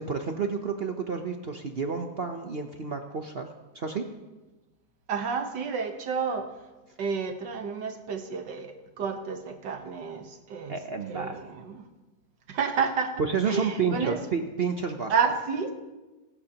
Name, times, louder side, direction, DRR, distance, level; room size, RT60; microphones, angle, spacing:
voice 1, 0.0-3.5 3.7-4.0 10.7-11.3 13.2-15.1, right 5 dB, 50° right, 5 dB, 0.7 m, -30 dB
voice 2, 5.1-6.6 7.0-10.8 11.1-11.9 12.5-14.2 15.1-15.7, right 5 dB, 75° right, 6 dB, 1.8 m, -30 dB
23.5 x 12.0 x 2.9 m, 1.1 s
omnidirectional pair, 1.9 m